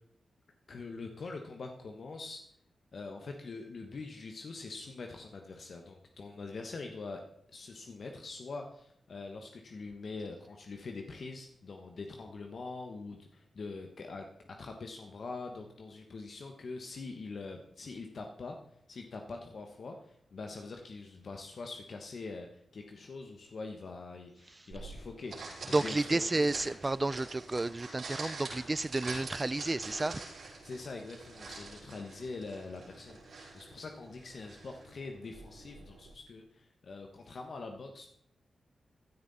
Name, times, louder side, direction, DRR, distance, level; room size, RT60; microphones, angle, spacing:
voice 1, 0.7-2.4 2.9-7.2 7.5-14.3 14.6-18.6 18.9-22.5 22.7-26.5 30.6-38.1, left 3 dB, 65° left, 3 dB, 1.2 m, -44 dB
sound 1, 24.7-36.1, right 3 dB, 75° right, 5.3 m, -46 dB
voice 2, 25.7-30.2, right 2 dB, 30° right, 20 dB, 0.4 m, -31 dB
16.0 x 9.5 x 4.1 m, 0.71 s
cardioid pair, 60°, 0 cm